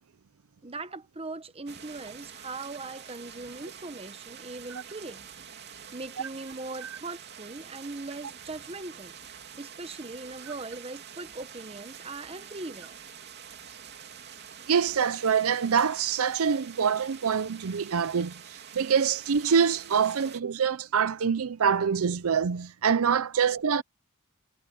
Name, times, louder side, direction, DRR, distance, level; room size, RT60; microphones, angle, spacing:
voice 1, 0.6-9.1 9.6-13.0 23.3-23.4, right 3 dB, 25° right, 1.1 m, -40 dB
sound 1, 1.7-20.4, right 8 dB, 50° right, 3.0 m, -46 dB
voice 2, 14.7-23.8, right 6 dB, 70° right, 0.5 m, -25 dB
head